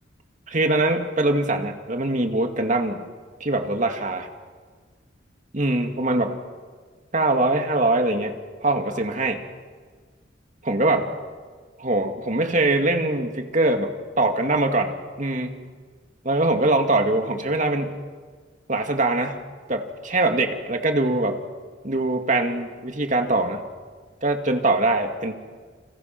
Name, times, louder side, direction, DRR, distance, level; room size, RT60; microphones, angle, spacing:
voice 1, 0.5-3.0 3.4-4.3 5.5-6.3 7.1-8.3 8.6-9.4 10.6-11.1 11.8-15.6 16.2-17.9 18.7-19.4 19.7-21.4 21.8-23.6 24.2-25.3, right 2 dB, 40° right, 5 dB, 2.3 m, -22 dB
29.5 x 27.0 x 6.0 m, 1.5 s
head